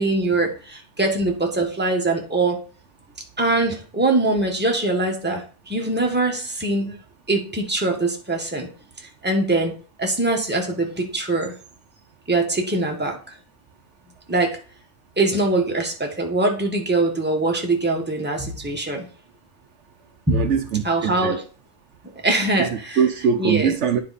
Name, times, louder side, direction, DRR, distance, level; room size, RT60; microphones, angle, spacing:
voice 1, 0.0-2.6 3.4-7.0 7.3-8.7 9.2-9.7 10.0-11.5 12.3-13.2 14.3-14.6 15.2-19.1 20.3-20.5 20.8-21.4 22.2-23.0 23.4-23.7, right 2 dB, 10° right, 1 dB, 1.3 m, -22 dB
voice 2, 20.3-21.4 22.6-22.7 23.0-24.0, right 7 dB, 70° right, 7 dB, 1.0 m, -22 dB
9.6 x 4.2 x 4.1 m, 0.38 s
omnidirectional pair, 1.3 m